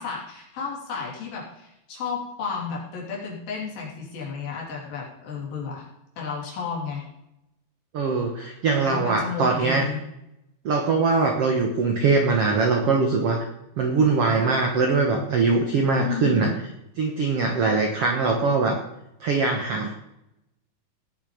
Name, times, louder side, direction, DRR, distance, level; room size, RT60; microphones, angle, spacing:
voice 1, 0.0-5.9 6.2-7.0 8.8-10.0 16.0-16.5, left 5 dB, 65° left, -3 dB, 4.8 m, -32 dB
voice 2, 7.9-9.8 10.6-13.4 13.8-16.5 17.0-18.8 19.2-19.9, right 4 dB, 65° right, 2 dB, 1.5 m, -22 dB
18.0 x 7.4 x 5.2 m, 0.87 s
omnidirectional pair, 4.5 m